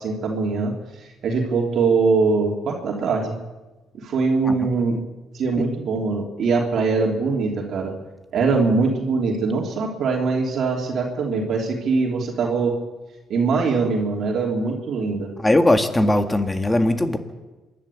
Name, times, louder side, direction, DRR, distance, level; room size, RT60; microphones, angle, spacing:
voice 1, 0.0-3.3 3.9-5.0 5.3-7.9 8.3-12.7 13.3-15.3, right 4 dB, 65° right, 0 dB, 3.1 m, -22 dB
voice 2, 15.4-17.2, left 1 dB, 15° left, 7 dB, 2.1 m, -19 dB
27.0 x 11.5 x 8.6 m, 1.2 s
cardioid pair, 90°, 0 cm